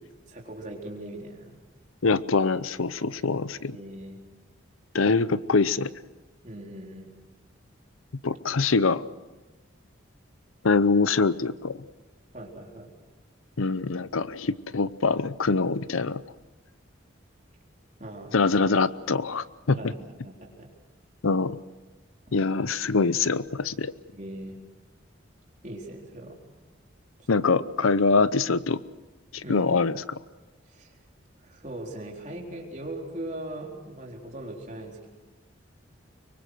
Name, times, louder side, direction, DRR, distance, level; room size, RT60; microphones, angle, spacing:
voice 1, 0.2-1.6 3.7-4.2 6.4-7.1 12.3-12.9 18.0-18.4 19.8-20.7 24.1-24.6 25.6-26.4 27.2-27.3 29.4-29.7 30.7-31.0 31.4-35.1, right 1 dB, 35° right, -1 dB, 4.0 m, -40 dB
voice 2, 2.0-3.8 4.9-5.9 8.2-9.0 10.6-11.8 13.6-16.2 18.3-19.8 21.2-21.6 22.3-23.9 27.3-28.8 29.3-30.2, left 4 dB, 90° left, 16 dB, 0.7 m, -24 dB
25.0 x 23.5 x 6.3 m, 1.2 s
head